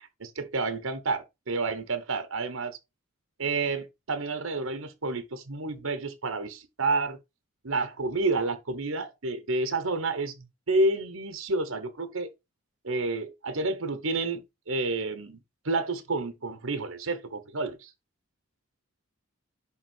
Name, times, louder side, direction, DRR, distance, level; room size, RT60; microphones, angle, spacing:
voice 1, 0.0-2.8 3.4-7.2 7.6-10.3 10.7-12.3 12.8-15.4 15.6-17.9, right 3 dB, 75° right, 1.1 m, -30 dB
11.0 x 3.7 x 4.5 m
head